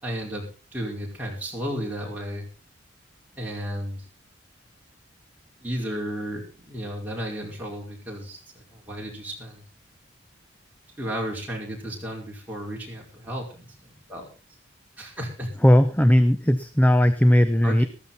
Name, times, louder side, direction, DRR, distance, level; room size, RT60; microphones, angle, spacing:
voice 1, 0.0-2.5 3.3-4.0 5.6-9.6 11.0-14.3 15.0-15.5 17.6-17.9, equal, 10° right, -2 dB, 4.9 m, -33 dB
voice 2, 15.6-17.8, equal, 10° left, 11 dB, 0.7 m, -18 dB
14.0 x 14.0 x 4.2 m, 0.34 s
head